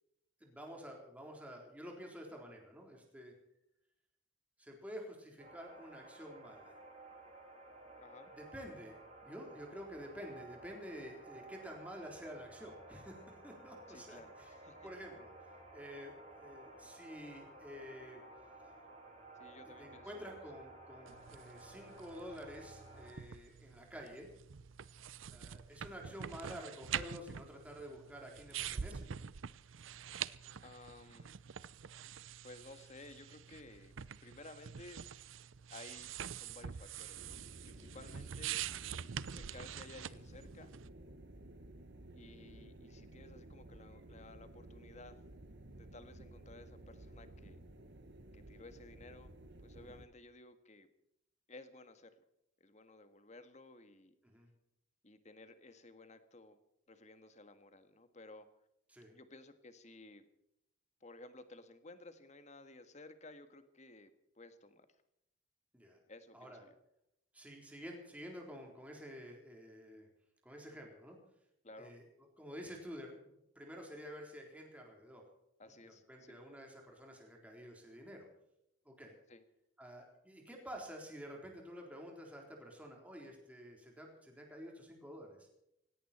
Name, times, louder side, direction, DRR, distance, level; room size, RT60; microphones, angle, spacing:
voice 1, 0.4-3.3 4.6-6.8 8.3-14.5 14.8-15.3 15.7-18.2 19.8-24.3 25.3-29.1 37.8-38.0 49.8-50.0 54.2-54.5 58.9-59.1 65.7-66.0 66.3-66.6 67.3-70.1 70.4-71.2 71.8-72.0 72.4-75.3 75.8-78.3 78.9-79.2 79.8-85.5, equal, 5° right, 0 dB, 3.8 m, -50 dB
sound 1, 5.4-23.1, right 2 dB, 30° right, 6.5 m, -55 dB
voice 2, 8.0-8.3 13.9-14.9 19.4-20.3 30.6-31.3 32.4-33.9 34.2-35.1 35.7-37.4 37.6-38.6 39.3-40.7 42.1-45.2 45.7-47.6 48.3-49.3 49.6-50.9 51.5-52.1 52.6-54.1 55.0-56.6 56.9-58.5 59.1-60.2 61.0-64.1 64.3-64.9 66.1-66.7 71.6-71.9 75.6-76.4 79.3-79.4, left 2 dB, 35° left, 10 dB, 1.6 m, -55 dB
sound 2, 21.1-40.9, right 8 dB, 85° right, 0.6 m, -46 dB
sound 3, 37.1-50.1, right 1 dB, 60° right, 1.4 m, -54 dB
17.5 x 17.5 x 4.4 m, 0.81 s
head